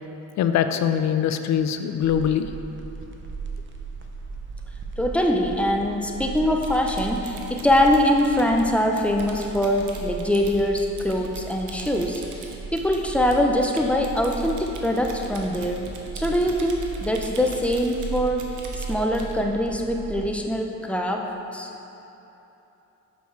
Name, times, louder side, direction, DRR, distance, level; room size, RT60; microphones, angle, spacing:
voice 1, 0.4-2.5, left 9 dB, 65° left, 8 dB, 0.5 m, -22 dB
sound 1, 2.0-20.4, right 4 dB, 40° right, 0.8 m, -37 dB
voice 2, 5.0-21.7, left 1 dB, 5° left, 1 dB, 0.6 m, -23 dB
Typing, 6.4-19.4, right 4 dB, 75° right, 0.9 m, -43 dB
6.4 x 5.2 x 4.6 m, 3.0 s
cardioid pair, 90°, 30 cm